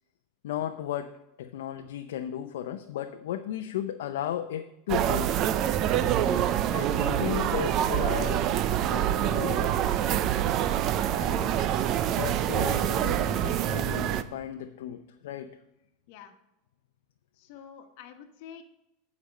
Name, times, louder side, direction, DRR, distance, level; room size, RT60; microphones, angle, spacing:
voice 1, 0.4-5.4 6.7-9.9 11.2-11.5 11.8-15.5, left 11 dB, 80° left, 7 dB, 0.5 m, -35 dB
sound 1, 4.9-14.2, right 11 dB, 45° right, 0.5 m, -26 dB
sound 2, 7.4-14.4, right 5 dB, 60° right, 2.5 m, -47 dB
voice 2, 17.4-18.6, left 8 dB, 60° left, 7 dB, 1.2 m, -47 dB
11.0 x 5.2 x 5.3 m, 0.88 s
supercardioid pair, 130°, 0 cm